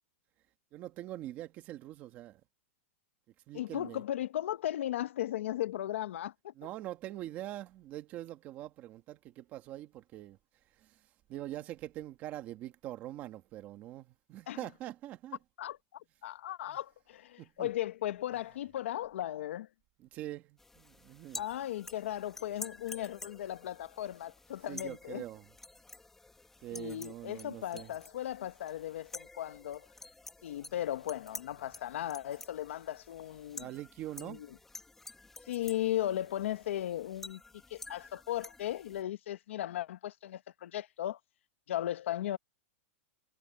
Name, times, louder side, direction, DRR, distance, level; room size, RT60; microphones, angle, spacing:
voice 1, 0.7-2.4 3.5-4.0 6.6-10.4 10.8-11.0 11.3-15.4 16.7-16.8 17.4-17.7 20.0-21.4 24.7-25.5 26.6-27.9 33.5-34.4, right 14 dB, 20° right, 1.5 m, -44 dB
voice 2, 3.5-6.5 14.5-14.6 15.6-19.7 21.4-25.2 26.7-29.9 30.4-33.7 34.2-34.5 35.5-37.4 37.7-41.2 41.7-42.4, left 12 dB, 65° left, 0.9 m, -36 dB
sound 1, 20.6-39.0, left 3 dB, 5° left, 1.3 m, -50 dB
supercardioid pair, 180°, 7 cm